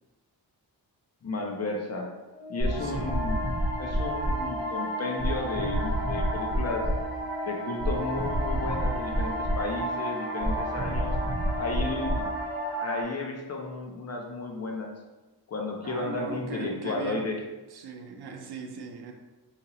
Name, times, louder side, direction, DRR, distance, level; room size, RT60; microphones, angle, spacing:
voice 1, 1.2-2.1 2.5-3.4 3.8-6.9 7.5-11.2 11.5-12.3 12.8-14.9 15.5-17.4, left 3 dB, 40° left, 1 dB, 0.5 m, -33 dB
Organ, 2.3-13.0, right 1 dB, 5° right, 1.2 m, -39 dB
sound 1, 2.6-13.0, equal, 25° right, 1.3 m, -29 dB
voice 2, 2.8-3.2 15.8-17.3 17.7-19.1, right 5 dB, 70° right, 2 dB, 0.6 m, -40 dB
2.9 x 2.8 x 3.9 m, 1.1 s
wide cardioid pair, 160°, 40 cm